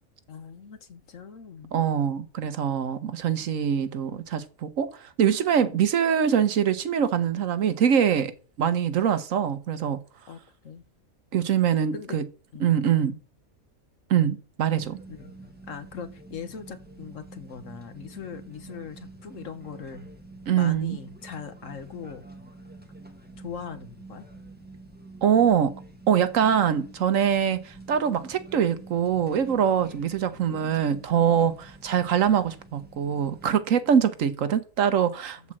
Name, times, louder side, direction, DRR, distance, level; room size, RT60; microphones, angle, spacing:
voice 1, 0.3-1.7 5.6-5.8 10.3-10.8 11.9-12.2 12.5-12.8 15.1-15.3 15.7-20.0 20.5-22.3 23.4-24.2 31.1-31.6 33.8-34.0, left 6 dB, 65° left, 1.5 m, -41 dB
voice 2, 1.7-8.3 8.6-10.0 11.3-12.2 12.6-13.2 14.1-15.0 20.5-21.0 25.2-25.7 26.1-35.4, right 8 dB, 70° right, 1.2 m, -23 dB
sound 1, 14.7-33.5, right 2 dB, 5° right, 1.4 m, -47 dB
12.0 x 4.3 x 7.5 m
omnidirectional pair, 1.5 m